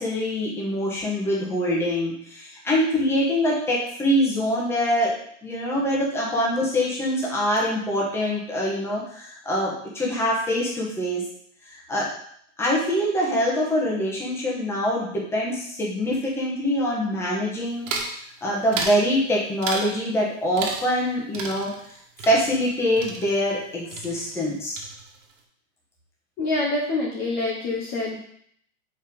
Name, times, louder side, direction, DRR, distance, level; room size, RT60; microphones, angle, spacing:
voice 1, 0.0-5.1 5.4-11.2 11.7-12.1 12.6-18.2 18.4-21.7 22.3-24.8, equal, 5° left, -4 dB, 1.1 m, -24 dB
sound 1, 17.9-18.2 18.7-19.1 19.6-20.0 20.6-21.1 21.3-23.7 23.9-24.5 24.8-25.3, right 4 dB, 70° right, 1.4 m, -33 dB
voice 2, 26.4-28.2, left 2 dB, 25° left, -4 dB, 1.0 m, -26 dB
5.6 x 4.9 x 3.6 m, 0.65 s
hypercardioid pair, 155°, 39 cm